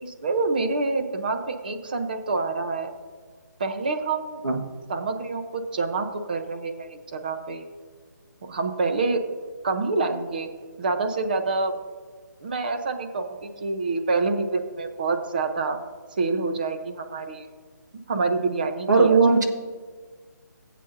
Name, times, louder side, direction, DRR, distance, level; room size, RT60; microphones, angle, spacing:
voice 1, 0.0-2.9 3.6-4.4 4.9-7.7 8.4-9.2 9.6-10.5 10.8-11.7 12.4-15.8 16.2-17.5 18.1-19.2, right 3 dB, 30° right, 6 dB, 0.7 m, -27 dB
voice 2, 18.9-19.5, right 4 dB, 65° right, 4 dB, 1.5 m, -17 dB
17.5 x 8.3 x 2.6 m, 1.5 s
hypercardioid pair, 175°, 10 cm